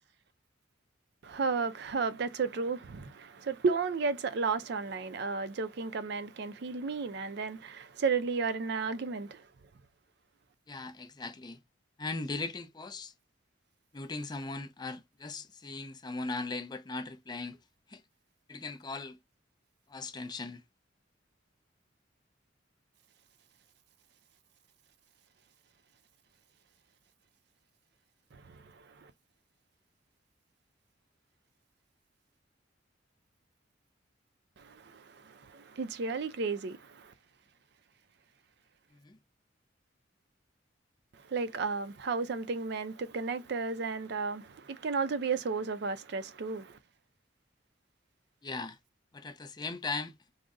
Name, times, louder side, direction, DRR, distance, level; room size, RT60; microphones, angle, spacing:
voice 1, 1.2-9.5 28.3-29.1 34.6-37.1 41.2-46.8, right 4 dB, 60° right, 0.4 m, -33 dB
voice 2, 10.7-11.6 12.0-13.1 13.9-17.6 17.9-18.0 18.5-19.2 19.9-20.6 39.0-39.2 48.4-48.8 49.1-50.1, left 3 dB, 20° left, 0.4 m, -38 dB
3.8 x 2.0 x 3.5 m
head